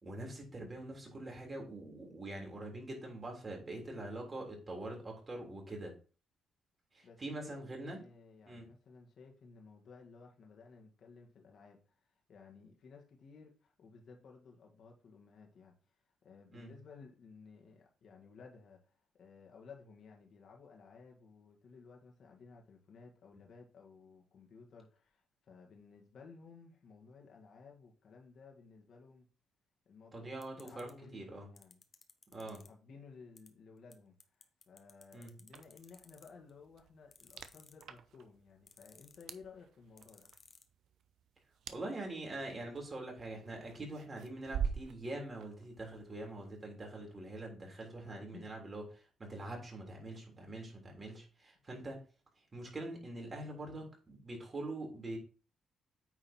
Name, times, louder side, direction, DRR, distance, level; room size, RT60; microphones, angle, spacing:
voice 1, 0.0-5.9 6.9-8.0 8.5-8.7 16.5-16.7 30.1-31.5 32.3-32.6 35.1-35.4 41.7-52.0 52.5-55.2, right 2 dB, 30° right, 3.4 m, -44 dB
voice 2, 7.0-12.0 12.3-15.7 16.2-29.3 29.9-31.8 32.7-34.2 34.7-40.3 48.0-48.6, left 5 dB, 60° left, 1.9 m, -56 dB
sound 1, 30.4-30.9 31.6-32.7 33.4-33.5 33.9-34.0 34.2-36.5 37.1-38.0 38.7-39.3 40.0-40.6, left 5 dB, 40° left, 1.0 m, -58 dB
sound 2, 35.5-46.7, right 7 dB, 70° right, 0.7 m, -46 dB
9.0 x 4.0 x 4.4 m
cardioid pair, 90°, 0 cm